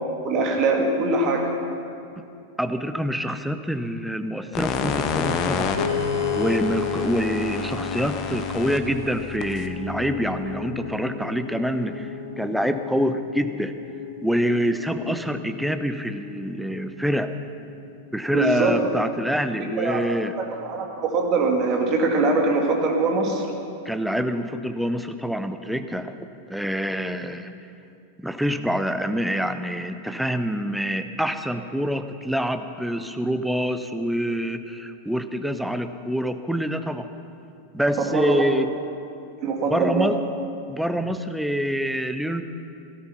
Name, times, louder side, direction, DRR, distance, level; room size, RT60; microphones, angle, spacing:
voice 1, 0.2-1.5 18.3-18.8 19.8-20.0 20.5-23.4 38.0-38.4 39.4-40.1, right 3 dB, 35° right, 1 dB, 2.4 m, -22 dB
voice 2, 2.6-5.8 6.3-12.1 12.4-13.7 14.2-17.3 18.1-20.4 23.8-26.1 26.5-27.5 28.2-37.1 37.7-38.7 39.7-40.2 40.7-42.4, equal, ahead, 9 dB, 0.8 m, -26 dB
sound 1, 4.5-10.6, left 6 dB, 35° left, 1.0 m, -30 dB
Piano, 5.8-18.0, left 7 dB, 80° left, 2.2 m, -33 dB
17.0 x 13.5 x 5.8 m, 2.6 s
figure-of-eight pair, 90°, 0 cm